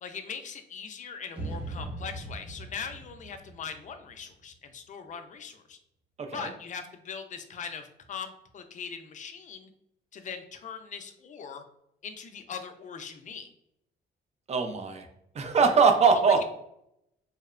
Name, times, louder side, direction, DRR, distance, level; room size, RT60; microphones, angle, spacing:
voice 1, 0.0-5.8 6.3-9.7 10.1-11.6 12.0-13.5 16.1-16.2, left 6 dB, 40° left, 7 dB, 0.4 m, -40 dB
sound 1, 1.3-4.5, right 2 dB, 5° right, 0.9 m, -40 dB
voice 2, 6.2-6.5 14.5-15.1 15.3-16.4, right 5 dB, 35° right, 5 dB, 0.4 m, -22 dB
2.8 x 2.0 x 2.4 m, 0.79 s
cardioid pair, 90°, 20 cm